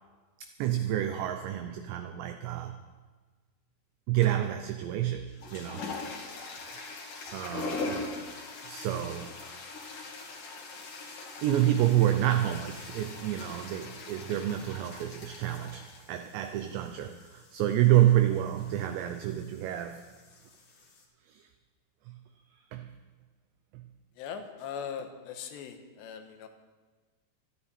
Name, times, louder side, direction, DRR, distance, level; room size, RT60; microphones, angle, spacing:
voice 1, 0.4-2.8 4.1-5.9 7.3-8.0 8.6-9.4 11.4-20.1 21.3-21.5 22.1-22.2 22.7-22.9 23.7-23.8, right 12 dB, 85° right, 7 dB, 2.5 m, -28 dB
sound 1, 4.2-4.6 5.2-21.0, left 3 dB, 55° left, 2.8 m, -42 dB
voice 2, 24.2-26.5, left 7 dB, 70° left, 6 dB, 3.0 m, -40 dB
26.5 x 9.4 x 4.3 m, 1.4 s
omnidirectional pair, 5.9 m